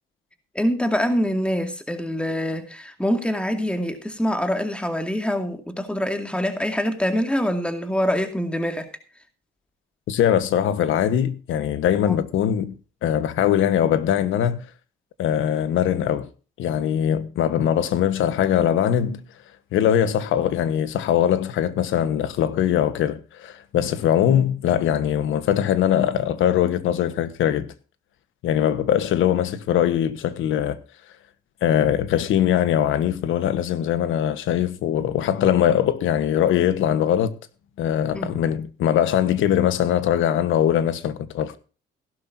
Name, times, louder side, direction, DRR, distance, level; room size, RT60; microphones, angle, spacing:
voice 1, 0.5-8.9 12.0-12.2 38.1-38.3, equal, 5° left, 2.3 m, -25 dB
voice 2, 10.1-14.7 15.2-16.3 16.6-19.2 19.7-27.7 28.4-30.8 31.6-37.3 37.8-41.6, left 10 dB, 80° left, 1.3 m, -21 dB
16.0 x 12.0 x 2.7 m
cardioid pair, 90°, 20 cm